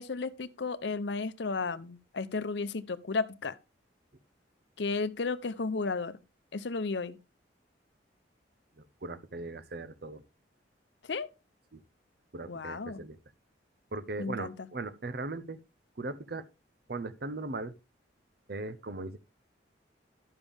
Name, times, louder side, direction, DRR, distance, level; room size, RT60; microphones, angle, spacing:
voice 1, 0.0-3.6 4.8-6.2 6.5-7.2 11.0-11.3 12.5-13.0 14.2-14.5, left 4 dB, 70° left, 0.7 m, -33 dB
voice 2, 8.8-10.2 11.7-11.8 12.3-13.2 13.9-15.6 16.0-16.5 16.9-17.8 18.5-19.2, right 3 dB, 55° right, 0.8 m, -38 dB
12.0 x 7.1 x 3.5 m
head